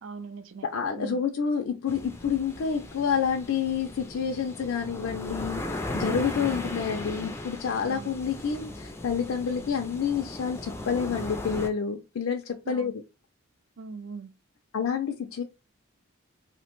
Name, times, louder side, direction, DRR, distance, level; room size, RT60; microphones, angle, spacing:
voice 1, 0.0-0.7 1.0-1.2 7.8-8.2 12.7-13.0 13.8-14.3, right 4 dB, 65° right, 0.4 m, -40 dB
voice 2, 0.7-5.7 5.9-12.9 14.7-15.4, left 6 dB, 75° left, 0.4 m, -28 dB
sound 1, 1.9-11.7, left 1 dB, 15° left, 0.3 m, -37 dB
2.8 x 2.1 x 2.9 m
head